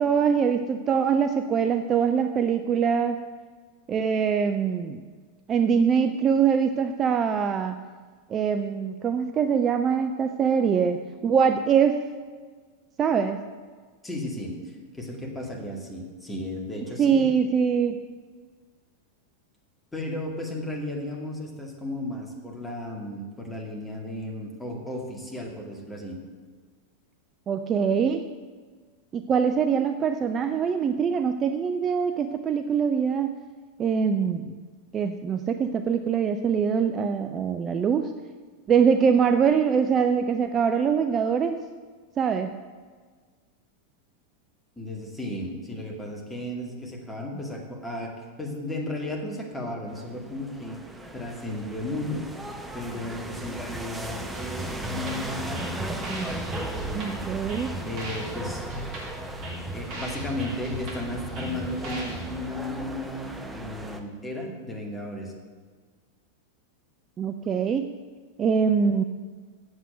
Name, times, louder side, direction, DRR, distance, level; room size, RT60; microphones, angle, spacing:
voice 1, 0.0-3.2 3.9-5.0 5.5-7.8 8.3-12.0 13.0-13.4 17.0-18.0 27.5-28.2 29.1-33.4 33.8-34.6 34.9-38.1 38.7-41.6 42.2-42.5 56.9-57.7 67.2-67.9 68.4-69.0, right 6 dB, 25° right, 7 dB, 0.5 m, -23 dB
voice 2, 14.0-17.3 19.9-26.2 44.8-50.8 51.1-52.2 52.7-55.7 56.2-57.4 57.8-58.7 59.7-65.3, left 1 dB, 10° left, -1 dB, 2.2 m, -34 dB
sound 1, 49.9-64.0, right 1 dB, 5° right, 1.0 m, -37 dB
sound 2, 54.3-62.3, right 1 dB, 40° right, 2.8 m, -37 dB
8.0 x 7.5 x 8.0 m, 1.5 s
figure-of-eight pair, 90°, 0 cm